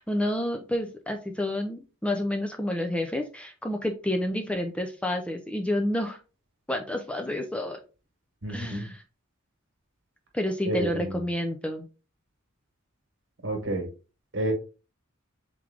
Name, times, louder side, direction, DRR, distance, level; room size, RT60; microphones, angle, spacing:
voice 1, 0.0-6.2 6.7-7.8 8.5-9.0 10.3-11.8, left 1 dB, 5° left, 0.3 m, -29 dB
voice 2, 8.4-8.9 10.7-11.2 13.4-13.9 14.3-14.5, right 1 dB, 60° right, 1.3 m, -30 dB
3.6 x 3.2 x 3.4 m
head